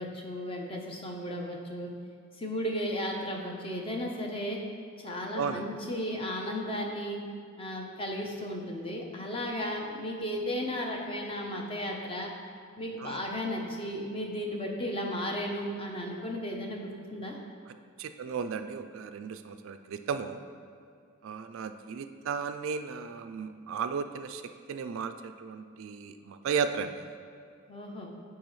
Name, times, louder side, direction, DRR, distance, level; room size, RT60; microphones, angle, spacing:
voice 1, 0.0-1.9 2.4-4.6 5.0-7.2 7.6-12.3 12.8-17.3 27.7-28.1, equal, 25° left, 0 dB, 0.7 m, -34 dB
voice 2, 18.0-20.4 21.2-24.4 24.7-27.1, right 6 dB, 60° right, 9 dB, 0.3 m, -34 dB
9.3 x 4.7 x 3.1 m, 2.4 s
head